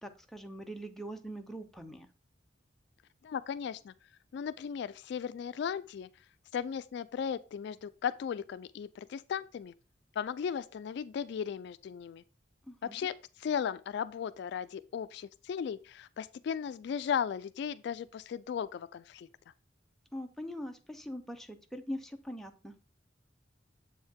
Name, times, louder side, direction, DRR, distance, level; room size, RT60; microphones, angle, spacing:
voice 1, 0.0-2.1 12.6-13.0 20.1-22.7, equal, ahead, 0.7 m, -42 dB
voice 2, 3.2-3.9 4.3-6.1 6.5-9.7 10.2-12.2 12.9-13.1 13.4-19.3, left 7 dB, 65° left, 0.3 m, -36 dB
7.4 x 4.4 x 3.6 m
head